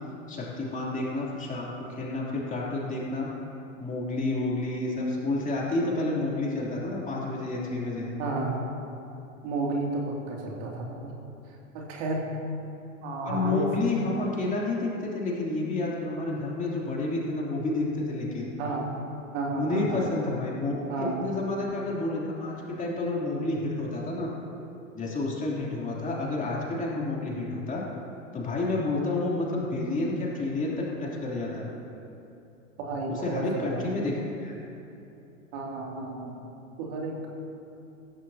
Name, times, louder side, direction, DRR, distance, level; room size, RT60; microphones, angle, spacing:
voice 1, 0.3-3.3 3.8-8.1 13.2-18.5 19.6-24.3 24.9-27.8 28.3-31.7 33.1-34.5, left 2 dB, 20° left, -4 dB, 3.0 m, -30 dB
voice 2, 8.2-8.6 9.4-11.1 11.7-12.3 13.0-13.7 18.6-18.9 19.3-20.1 20.9-21.3 32.8-33.9 35.5-36.4 36.8-37.3, right 2 dB, 55° right, -2 dB, 2.7 m, -32 dB
16.0 x 14.5 x 2.8 m, 2.8 s
hypercardioid pair, 95°, 40 cm